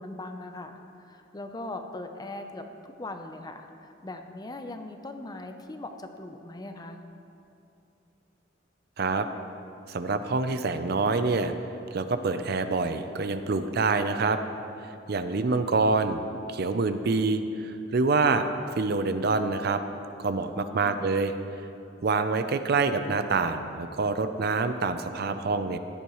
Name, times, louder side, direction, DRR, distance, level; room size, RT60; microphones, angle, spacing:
voice 1, 0.0-7.0 20.5-21.1, left 2 dB, 20° left, 6 dB, 0.6 m, -40 dB
voice 2, 9.9-11.5 11.9-14.4 14.8-16.2 16.5-18.5 18.8-19.8 20.2-21.3 22.0-25.8, right 3 dB, 55° right, 9 dB, 0.5 m, -26 dB
15.0 x 10.0 x 3.1 m, 2.8 s
head